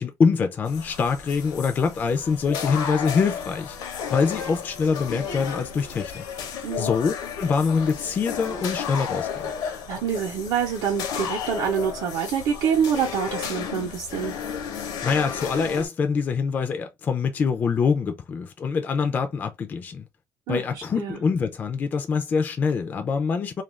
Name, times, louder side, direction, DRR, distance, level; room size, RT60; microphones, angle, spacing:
voice 1, 0.0-3.8 4.1-6.2 6.8-9.3 15.0-20.1 20.5-23.6, left 5 dB, 25° left, 0.3 m, -24 dB
sound 1, 0.7-15.9, left 7 dB, 70° left, 0.7 m, -33 dB
voice 2, 9.9-14.3 20.5-21.2, right 7 dB, 65° right, 0.7 m, -26 dB
2.4 x 2.2 x 3.0 m
cardioid pair, 175°, 7 cm